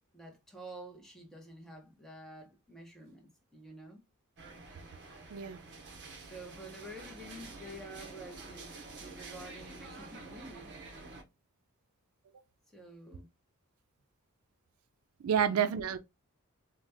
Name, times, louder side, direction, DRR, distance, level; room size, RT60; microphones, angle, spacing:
voice 1, 0.1-4.1 6.2-10.8 12.7-13.3 15.3-15.7, right 1 dB, ahead, 0.7 m, -49 dB
sound 1, 4.4-11.2, right 3 dB, 55° right, 0.7 m, -48 dB
voice 2, 5.3-5.6 15.2-16.0, right 8 dB, 75° right, 0.4 m, -29 dB
2.8 x 2.2 x 3.3 m
head